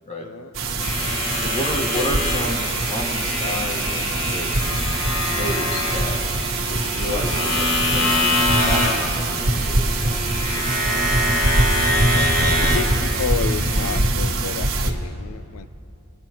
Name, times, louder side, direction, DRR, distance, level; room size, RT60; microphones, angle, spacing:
voice 1, 0.2-0.5 12.4-15.7, left 6 dB, 90° left, 15 dB, 0.4 m, -31 dB
sound 1, 0.5-14.9, right 2 dB, 65° right, 1.1 m, -24 dB
sound 2, 0.8-14.0, left 1 dB, 60° left, 2.0 m, -25 dB
voice 2, 1.3-6.2 6.5-10.8, equal, 30° left, 1 dB, 1.4 m, -31 dB
20.5 x 9.7 x 2.9 m, 2.9 s
head